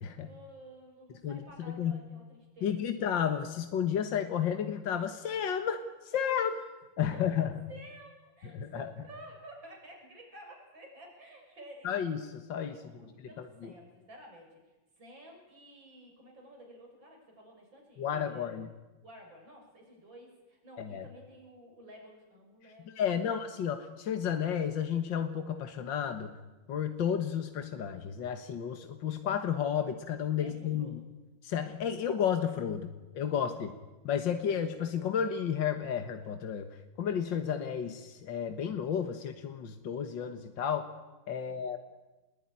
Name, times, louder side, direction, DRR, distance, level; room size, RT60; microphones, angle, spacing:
voice 1, 0.2-3.1 6.4-6.6 7.0-7.4 7.7-11.9 12.7-18.5 19.0-23.4 30.4-31.0 33.5-33.7 41.3-41.7, right 1 dB, 75° right, 1 dB, 7.1 m, -52 dB
voice 2, 1.2-1.9 2.6-6.6 7.0-7.5 8.4-8.9 11.8-13.7 18.0-18.7 20.8-21.1 22.9-26.3 26.7-31.0 31.4-33.7 34.0-36.7 37.0-40.9 41.3-41.8, left 8 dB, 75° left, 7 dB, 2.1 m, -32 dB
26.0 x 21.5 x 10.0 m, 1.1 s
omnidirectional pair, 2.1 m